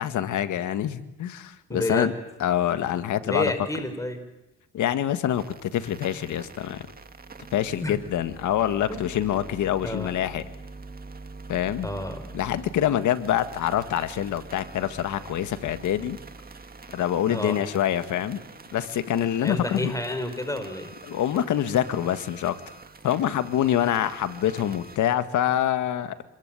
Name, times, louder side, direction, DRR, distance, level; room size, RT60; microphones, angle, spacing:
voice 1, 0.0-2.1 2.4-3.5 4.7-6.9 7.5-10.4 11.5-11.9 12.3-16.2 16.9-18.4 18.7-19.9 21.1-22.5 23.0-26.2, left 11 dB, 75° left, 11 dB, 1.9 m, -25 dB
voice 2, 1.7-2.1 3.2-4.2 7.8-8.0 8.9-9.2 9.8-10.1 11.8-12.3 17.2-17.6 19.4-20.9, left 1 dB, 10° left, 8 dB, 5.2 m, -30 dB
sound 1, 5.3-25.0, right 3 dB, 30° right, 2.1 m, -45 dB
26.5 x 22.0 x 9.1 m, 0.89 s
cardioid pair, 90°, 30 cm